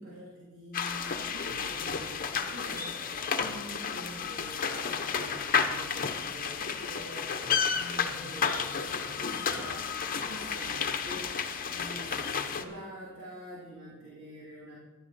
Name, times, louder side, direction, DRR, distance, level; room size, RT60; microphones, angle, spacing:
voice 1, 0.0-14.8, right 1 dB, 70° right, -8 dB, 3.1 m, -46 dB
sound 1, 0.7-12.6, left 6 dB, 40° left, 0.8 m, -32 dB
15.0 x 11.0 x 4.2 m, 1.3 s
head